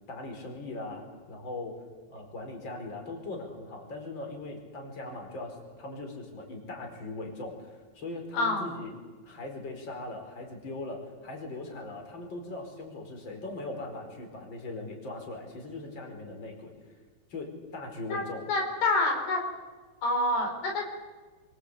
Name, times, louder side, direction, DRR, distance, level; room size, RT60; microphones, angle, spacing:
voice 1, 0.1-1.8 2.1-9.0 9.2-16.7 17.3-18.4, left 2 dB, 30° left, 2 dB, 5.3 m, -40 dB
voice 2, 8.3-8.7 18.1-18.2 18.5-19.4 20.0-20.8, left 2 dB, 90° left, 2 dB, 6.4 m, -27 dB
27.5 x 24.0 x 8.4 m, 1.3 s
omnidirectional pair, 4.5 m